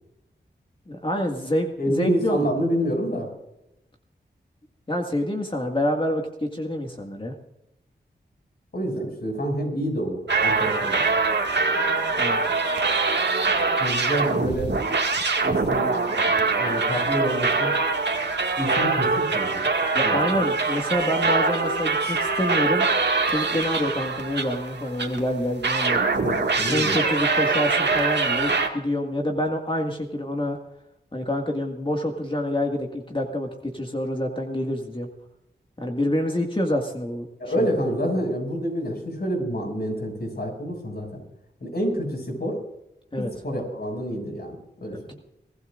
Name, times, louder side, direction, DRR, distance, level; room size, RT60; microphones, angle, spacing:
voice 1, 0.9-2.5 4.9-7.3 12.2-12.4 19.9-22.9 23.3-26.0 26.7-30.6 31.1-35.1 35.8-37.3 37.6-37.7 43.1-43.3 44.9-45.1, left 1 dB, 25° left, 2 dB, 2.0 m, -27 dB
voice 2, 1.8-3.3 8.7-11.0 13.8-14.7 15.4-16.0 16.6-17.7 18.6-19.7 20.0-20.2 22.0-22.1 26.1-27.0 37.4-41.2 41.6-42.6 43.4-45.1, equal, 55° left, 2 dB, 6.6 m, -27 dB
sound 1, 10.3-25.2 25.6-28.7, right 4 dB, 65° right, 2.1 m, -23 dB
23.5 x 15.5 x 2.6 m, 0.86 s
cardioid pair, 45°, 19 cm